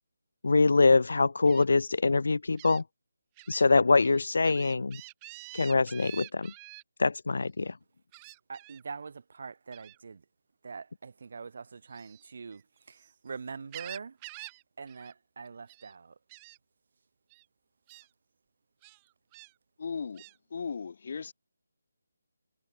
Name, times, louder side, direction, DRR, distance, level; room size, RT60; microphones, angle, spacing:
voice 1, 0.4-2.8 3.5-5.0 5.5-6.5 7.0-7.7, left 3 dB, 70° left, 0.8 m, -24 dB
Gull seagull, 1.5-1.6 2.6-2.8 3.4-3.6 4.0-6.8 8.1-8.8 9.7-10.0 11.8-13.1 13.5-14.6 14.9-15.1 15.4-15.9 16.3-16.6 17.3-17.4 17.9-18.1 18.8-19.5 20.2-20.4, right 26 dB, 20° right, 4.2 m, -48 dB
voice 2, 8.5-10.2 10.6-14.2 14.8-16.2, right 5 dB, 55° right, 4.8 m, -43 dB
voice 3, 19.8-20.2 20.5-21.3, left 5 dB, 50° left, 2.8 m, -36 dB
figure-of-eight pair, 160°, 0 cm